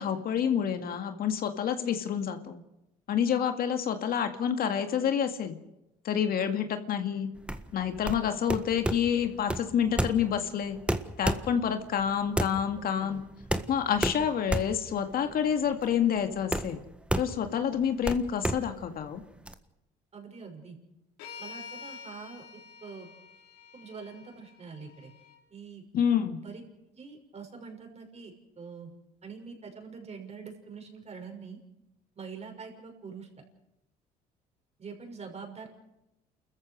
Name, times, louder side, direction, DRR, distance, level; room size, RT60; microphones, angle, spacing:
voice 1, 0.0-2.6 3.1-5.6 6.0-7.3 7.7-10.8 11.2-13.2 13.7-16.8 17.2-19.2 25.9-26.4, left 8 dB, 55° left, 7 dB, 2.1 m, -28 dB
sound 1, 7.4-19.5, right 1 dB, 5° right, 1.6 m, -33 dB
voice 2, 12.8-13.2 20.1-20.8 21.4-22.4 22.8-23.1 23.7-25.1 25.5-25.8 26.4-26.6 26.9-28.9 29.2-31.6 32.2-33.3 34.8-35.7, right 5 dB, 40° right, 3 dB, 6.2 m, -44 dB
sound 2, 21.2-25.4, left 6 dB, 80° left, 5.1 m, -47 dB
29.5 x 14.5 x 6.4 m, 0.89 s
supercardioid pair, 75°, 18 cm